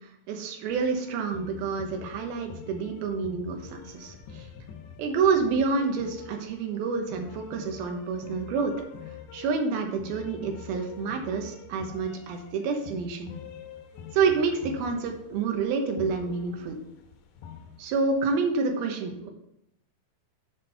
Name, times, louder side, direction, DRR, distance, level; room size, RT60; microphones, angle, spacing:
voice 1, 0.3-4.5 5.0-8.7 9.3-13.3 14.1-16.8 17.8-19.3, right 4 dB, 75° right, 3 dB, 2.4 m, -28 dB
sound 1, 0.7-18.4, left 6 dB, 75° left, 2.9 m, -46 dB
7.4 x 7.2 x 4.2 m, 0.78 s
omnidirectional pair, 5.5 m